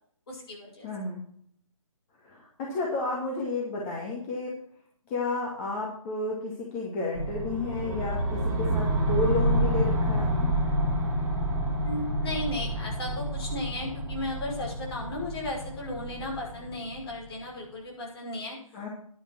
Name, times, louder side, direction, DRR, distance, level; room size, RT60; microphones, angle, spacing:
voice 1, 0.3-0.9 11.8-18.6, left 1 dB, 45° left, -1 dB, 5.7 m, -35 dB
voice 2, 0.8-1.2 2.2-4.6 5.1-10.5 18.7-18.9, left 2 dB, 25° left, -3 dB, 2.2 m, -32 dB
sound 1, 7.1-17.2, right 1 dB, 15° right, 6.2 m, -28 dB
11.0 x 9.9 x 4.5 m, 0.62 s
figure-of-eight pair, 150°, 18 cm